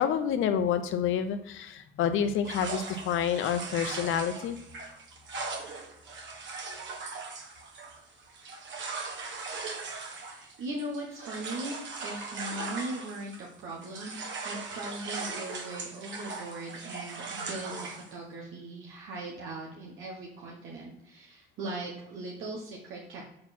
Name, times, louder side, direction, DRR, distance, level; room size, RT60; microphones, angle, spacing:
voice 1, 0.0-4.6, left 8 dB, 85° left, 9 dB, 0.8 m, -28 dB
sound 1, 2.4-13.5 13.8-18.1, right 4 dB, 70° right, 1.6 m, -39 dB
voice 2, 10.0-14.2 14.4-23.2, right 2 dB, 90° right, -2 dB, 1.3 m, -39 dB
7.6 x 4.2 x 4.3 m, 0.76 s
cardioid pair, 90°, 20 cm